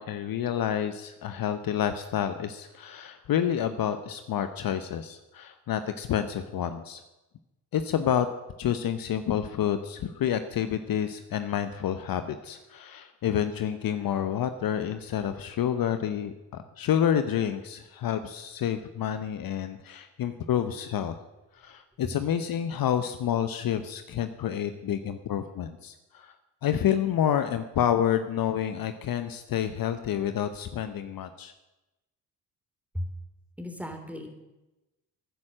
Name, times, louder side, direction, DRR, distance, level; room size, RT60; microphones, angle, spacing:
voice 1, 0.0-7.0 7.7-8.3 8.6-21.2 21.5-26.3 26.6-31.5, left 9 dB, 55° left, 10 dB, 0.9 m, -29 dB
voice 2, 33.6-34.3, equal, 5° right, 5 dB, 3.0 m, -35 dB
11.5 x 9.7 x 7.6 m, 1.0 s
hypercardioid pair, 50°, 43 cm